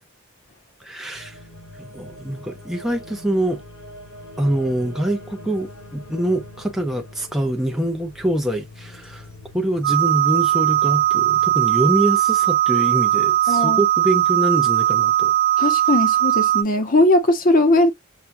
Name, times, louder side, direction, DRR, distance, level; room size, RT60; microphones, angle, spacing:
voice 1, 0.8-1.4 1.8-3.6 4.4-9.3 9.5-15.3, right 1 dB, ahead, 0.5 m, -24 dB
sound 1, 1.1-12.1, left 1 dB, 70° left, 1.5 m, -43 dB
sound 2, 9.8-16.6, right 13 dB, 55° right, 0.7 m, -19 dB
voice 2, 13.5-13.8 15.6-17.9, left 1 dB, 40° left, 0.7 m, -18 dB
5.7 x 2.2 x 2.5 m
head